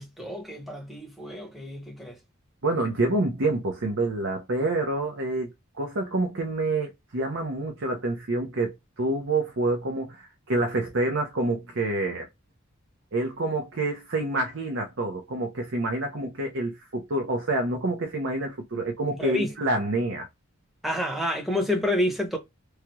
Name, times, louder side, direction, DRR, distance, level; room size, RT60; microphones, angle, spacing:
voice 1, 0.0-2.2 19.1-19.5 20.8-22.4, left 1 dB, ahead, 0.8 m, -29 dB
voice 2, 2.6-5.5 5.7-12.3 13.1-20.3, right 2 dB, 65° right, 0.7 m, -27 dB
3.2 x 2.3 x 3.0 m
head